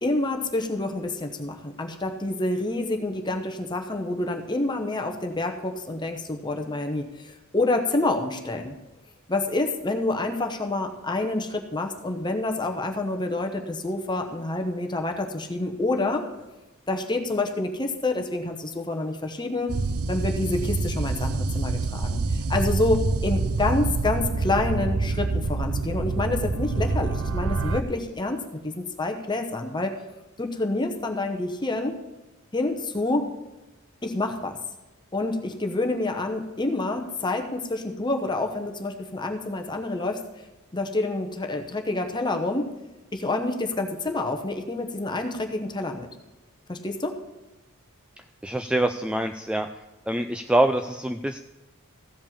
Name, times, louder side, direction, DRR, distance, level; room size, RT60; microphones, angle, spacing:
voice 1, 0.0-8.8 9.3-16.3 16.9-19.8 20.1-29.9 30.4-32.0 32.5-33.3 34.0-34.6 35.1-40.2 40.7-42.7 43.1-46.1 46.7-47.2, left 2 dB, 20° left, 4 dB, 0.9 m, -28 dB
sound 1, 19.7-27.8, right 3 dB, 85° right, 0.6 m, -26 dB
voice 2, 48.4-49.7 50.1-51.4, right 1 dB, 5° right, 7 dB, 0.3 m, -25 dB
15.0 x 5.3 x 7.2 m, 1.1 s
head